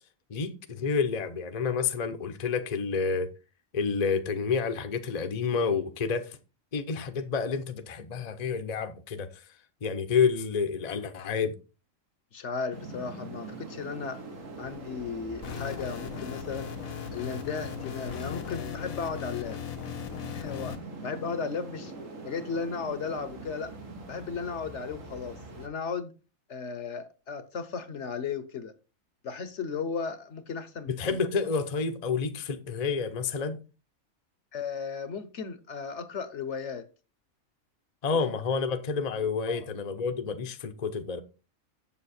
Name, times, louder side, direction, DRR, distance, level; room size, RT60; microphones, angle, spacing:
voice 1, 0.3-3.3 3.7-6.4 6.7-9.3 9.8-11.5 30.9-33.6 38.0-41.2, left 5 dB, 35° left, 0.8 m, -29 dB
voice 2, 12.3-14.2 14.6-16.7 17.1-19.6 20.3-20.8 21.0-21.9 22.2-23.7 24.1-26.1 26.5-28.7 29.2-31.2 34.5-36.9 38.1-38.2 39.5-39.6, left 5 dB, 60° left, 1.2 m, -35 dB
sound 1, 12.7-25.7, right 2 dB, 70° right, 1.9 m, -43 dB
sound 2, 15.4-20.8, left 9 dB, 85° left, 1.5 m, -38 dB
7.4 x 7.2 x 4.2 m
omnidirectional pair, 1.4 m